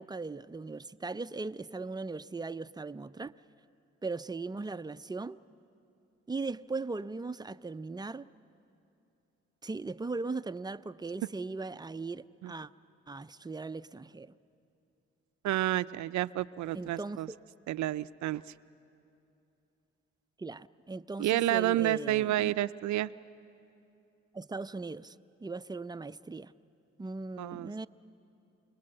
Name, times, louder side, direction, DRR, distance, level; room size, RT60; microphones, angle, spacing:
voice 1, 0.0-3.3 4.0-5.4 6.3-8.2 9.6-12.7 13.1-14.3 16.7-17.2 20.4-22.5 24.3-25.2 25.4-26.5 27.0-27.9, right 3 dB, 15° right, 0.5 m, -38 dB
voice 2, 15.4-17.3 17.7-18.4 21.2-23.1 27.4-27.7, right 14 dB, 75° right, 0.5 m, -30 dB
28.0 x 20.5 x 7.8 m
cardioid pair, 70°, 29 cm